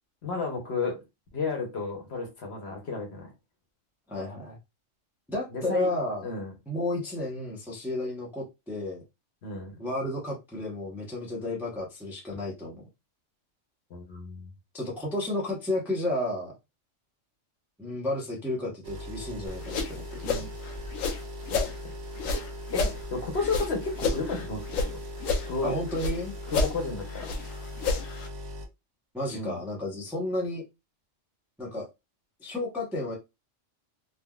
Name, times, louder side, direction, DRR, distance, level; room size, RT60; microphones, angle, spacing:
voice 1, 0.2-1.0 1.3-3.3 5.5-5.9 6.2-6.5 9.4-9.7 13.9-14.5 20.2-20.5 21.5-21.7 22.7-25.0 25.5-25.7 26.5-27.3 29.3-29.6, left 3 dB, 55° left, 1.0 m, -32 dB
voice 2, 4.1-4.6 5.3-6.3 6.7-9.0 9.8-12.8 14.7-16.5 17.8-20.2 25.6-26.3 29.1-30.6 31.6-31.9 32.4-33.2, left 1 dB, ahead, 0.6 m, -32 dB
sound 1, 18.8-28.7, left 1 dB, 45° right, 0.5 m, -39 dB
sound 2, 19.5-21.8 22.2-24.9 25.2-26.2 26.5-28.3, left 3 dB, 90° left, 1.0 m, -30 dB
3.5 x 2.3 x 2.3 m
omnidirectional pair, 1.3 m